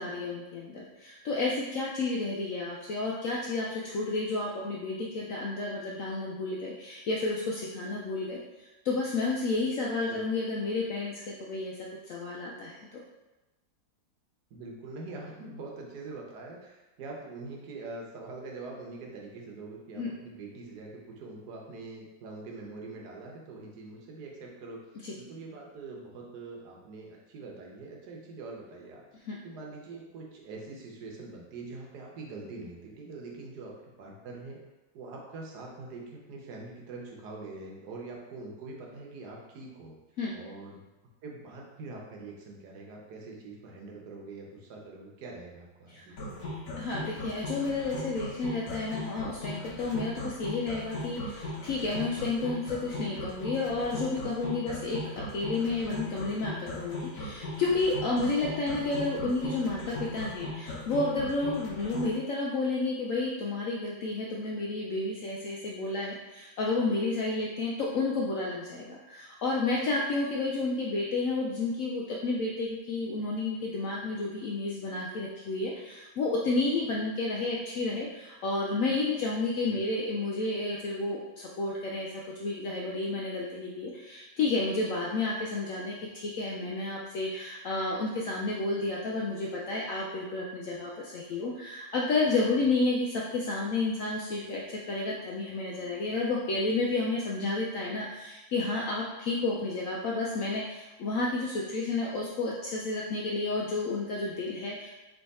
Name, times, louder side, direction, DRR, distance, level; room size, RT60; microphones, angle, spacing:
voice 1, 0.0-11.8 12.1-13.0 20.0-20.1 25.0-25.1 29.2-29.4 40.2-40.3 45.9-46.0 46.8-55.0 55.3-104.9, left 3 dB, 90° left, -3 dB, 0.7 m, -31 dB
voice 2, 14.5-24.8 25.2-29.0 29.4-33.7 34.0-34.6 34.9-39.9 40.3-40.8 41.2-46.6 79.7-79.8, right 3 dB, 65° right, -1 dB, 1.3 m, -44 dB
sound 1, 46.2-62.1, left 1 dB, 60° left, 1.3 m, -38 dB
3.4 x 3.1 x 4.1 m, 1.1 s
omnidirectional pair, 2.0 m